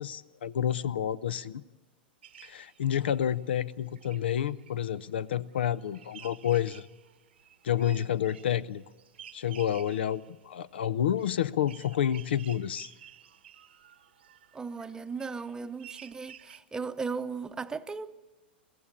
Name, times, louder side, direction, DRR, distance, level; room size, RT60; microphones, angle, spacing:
voice 1, 0.0-1.6 2.4-6.9 7.6-8.8 9.3-12.9, left 10 dB, 80° left, 0.6 m, -29 dB
sound 1, 2.2-3.4 3.7-16.6, right 9 dB, 85° right, 1.1 m, -53 dB
voice 2, 14.5-18.1, right 5 dB, 10° right, 0.7 m, -36 dB
22.0 x 15.5 x 8.5 m
hypercardioid pair, 115°, 6 cm